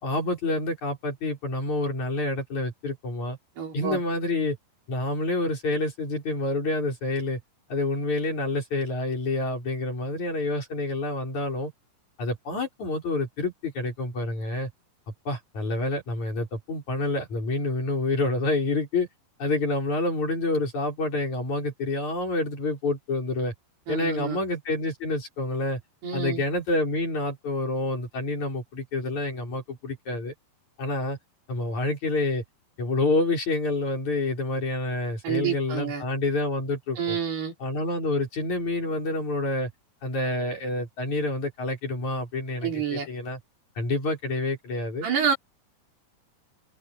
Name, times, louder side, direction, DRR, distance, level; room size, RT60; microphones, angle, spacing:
voice 1, 0.0-3.4 3.7-4.6 4.9-7.4 7.7-11.7 12.2-14.7 15.3-19.1 19.4-23.5 23.9-25.8 26.1-30.3 30.8-31.2 31.5-32.4 32.8-37.2 37.6-39.7 40.0-43.4 43.8-45.1, left 2 dB, 40° left, 7.4 m, -28 dB
voice 2, 3.6-4.0 23.9-24.4 26.0-26.4 35.2-36.1 37.0-37.5 42.6-43.1 45.0-45.4, right 7 dB, 70° right, 7.1 m, -28 dB
open air
omnidirectional pair, 4.9 m